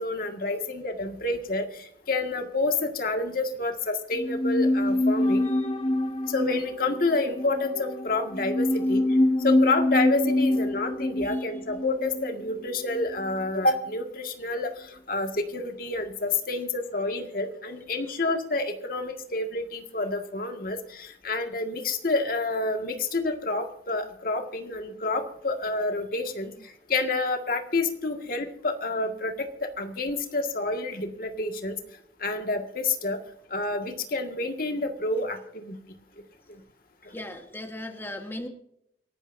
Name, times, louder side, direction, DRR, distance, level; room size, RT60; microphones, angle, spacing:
voice 1, 0.0-5.4 6.3-31.8 32.2-33.2 33.5-35.8 36.5-36.6 37.0-37.1, left 2 dB, 55° left, 5 dB, 1.9 m, -29 dB
sound 1, 4.1-13.5 13.7-13.8, left 1 dB, 30° left, 0.9 m, -26 dB
voice 2, 37.1-38.5, left 1 dB, 15° left, 4 dB, 1.4 m, -38 dB
28.5 x 12.0 x 2.7 m, 0.74 s
head